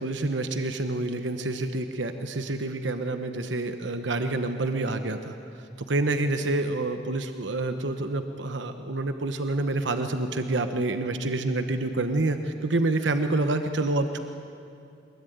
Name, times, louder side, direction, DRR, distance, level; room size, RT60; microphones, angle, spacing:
voice 1, 0.0-14.2, right 2 dB, 90° right, 7 dB, 1.1 m, -28 dB
23.0 x 21.5 x 9.4 m, 2.5 s
head